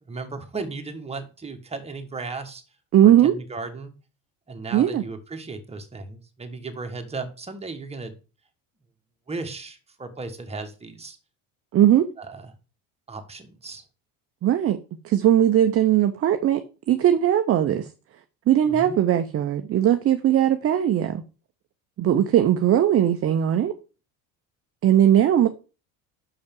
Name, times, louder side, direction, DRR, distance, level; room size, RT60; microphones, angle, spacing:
voice 1, 0.0-2.6 3.0-3.9 4.5-8.1 9.3-11.2 12.2-12.5 13.1-13.8 18.6-19.0, right 3 dB, 15° right, 1.4 m, -36 dB
voice 2, 2.9-3.3 4.7-5.0 11.7-12.1 14.4-14.8 15.0-16.6 16.9-17.9 18.5-21.2 22.0-23.7 24.8-25.5, right 11 dB, 35° right, 0.6 m, -19 dB
5.9 x 5.3 x 5.3 m
supercardioid pair, 100°, 40 cm